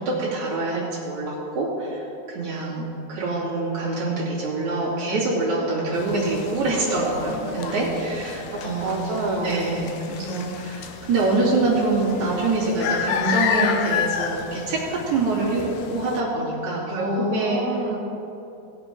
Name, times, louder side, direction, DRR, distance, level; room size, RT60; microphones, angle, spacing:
voice 1, 0.0-9.0 9.4-17.6, right 2 dB, 45° right, -7 dB, 3.8 m, -25 dB
sound 1, 5.9-16.2, left 7 dB, 85° left, 2.0 m, -31 dB
voice 2, 8.5-9.7 16.9-18.0, right 1 dB, 65° right, -3 dB, 3.4 m, -27 dB
18.5 x 7.9 x 3.8 m, 2.9 s
omnidirectional pair, 4.9 m